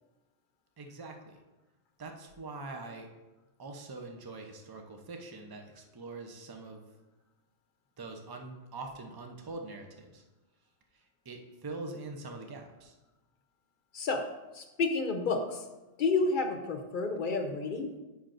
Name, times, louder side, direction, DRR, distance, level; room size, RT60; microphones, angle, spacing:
voice 1, 0.8-1.4 2.0-3.1 3.6-6.8 8.0-10.2 10.9-12.9, right 3 dB, 25° right, 3 dB, 0.5 m, -43 dB
voice 2, 13.9-14.3 14.5-15.6 16.0-17.9, left 3 dB, 50° left, 4 dB, 0.8 m, -30 dB
9.2 x 5.7 x 2.6 m, 1.1 s
omnidirectional pair, 1.2 m